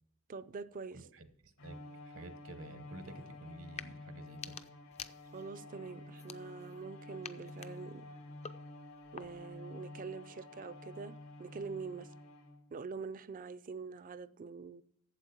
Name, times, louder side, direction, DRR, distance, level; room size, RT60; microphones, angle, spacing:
voice 1, 0.3-1.1 5.3-8.1 9.1-12.1 12.7-14.8, right 5 dB, 40° right, 0.4 m, -45 dB
voice 2, 0.9-4.6, right 2 dB, 70° right, 1.0 m, -51 dB
Bowed string instrument, 1.6-12.8, left 2 dB, 90° left, 2.7 m, -50 dB
sound 1, 3.0-4.0 5.6-6.6, left 1 dB, 70° left, 1.8 m, -65 dB
sound 2, 3.6-3.9 4.3-5.6 6.1-6.8 7.2-9.6, left 7 dB, 30° left, 0.4 m, -50 dB
8.4 x 7.5 x 6.8 m
head